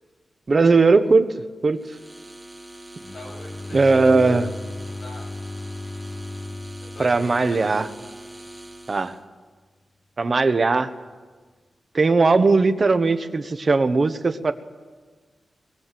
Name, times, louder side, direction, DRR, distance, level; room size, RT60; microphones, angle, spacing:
voice 1, 0.5-1.3 1.6-1.8 3.7-4.5 7.0-7.9 8.9-9.2 10.2-10.9 11.9-14.5, right 3 dB, 35° right, 10 dB, 1.2 m, -18 dB
sound 1, 1.8-9.2, right 1 dB, 10° right, 2.6 m, -42 dB
Bowed string instrument, 3.0-8.2, left 2 dB, 30° left, 1.4 m, -36 dB
voice 2, 3.1-4.0 4.9-5.3 6.8-7.8, left 1 dB, 50° left, 0 dB, 7.7 m, -41 dB
22.0 x 21.0 x 7.7 m, 1.4 s
wide cardioid pair, 125°, 0 cm